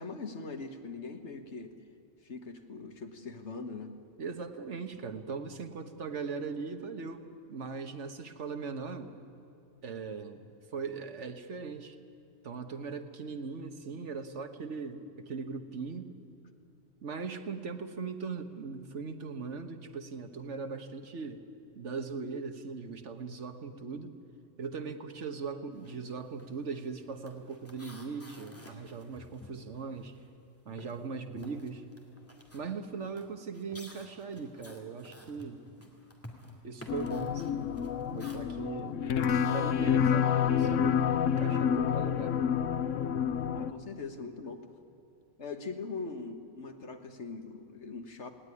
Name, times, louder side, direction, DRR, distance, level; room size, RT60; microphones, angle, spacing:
voice 1, 0.0-1.8 2.2-3.9 43.5-44.6 45.4-48.3, left 4 dB, 65° left, 6 dB, 1.8 m, -41 dB
voice 2, 4.2-9.1 9.8-12.0 12.4-16.1 17.0-21.4 21.7-24.1 24.6-30.2 30.6-31.8 32.5-35.6 36.6-37.7 38.1-39.0 39.5-42.4, right 5 dB, 75° right, 8 dB, 1.6 m, -39 dB
sound 1, 25.7-26.0 26.3-30.4 30.7-38.4, left 1 dB, 10° left, 2.5 m, -52 dB
sound 2, 36.9-43.7, left 8 dB, 90° left, 1.1 m, -28 dB
19.5 x 18.0 x 9.8 m, 2.8 s
omnidirectional pair, 1.2 m